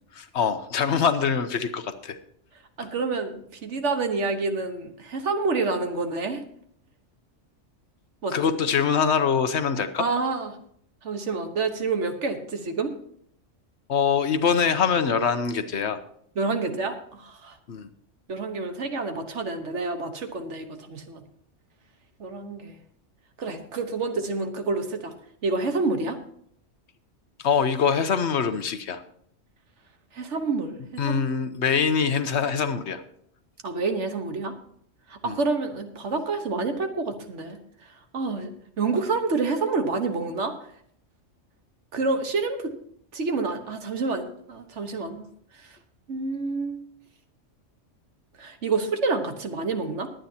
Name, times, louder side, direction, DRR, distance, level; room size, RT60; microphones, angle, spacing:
voice 1, 0.1-2.2 8.3-10.1 13.9-16.0 17.7-17.9 27.4-29.0 31.0-33.0 35.2-35.4, left 6 dB, 65° left, 10 dB, 1.1 m, -24 dB
voice 2, 2.8-6.4 8.2-8.6 10.0-10.6 11.0-12.9 16.4-17.6 18.3-21.2 22.2-22.8 23.4-25.1 25.4-26.2 30.1-31.2 33.6-34.5 35.1-37.6 38.1-38.5 38.8-40.6 41.9-42.7 43.1-45.3 45.6-45.8 46.1-46.8 48.4-50.1, right 3 dB, 70° right, 7 dB, 1.5 m, -28 dB
21.0 x 9.0 x 2.8 m, 0.65 s
omnidirectional pair, 1.3 m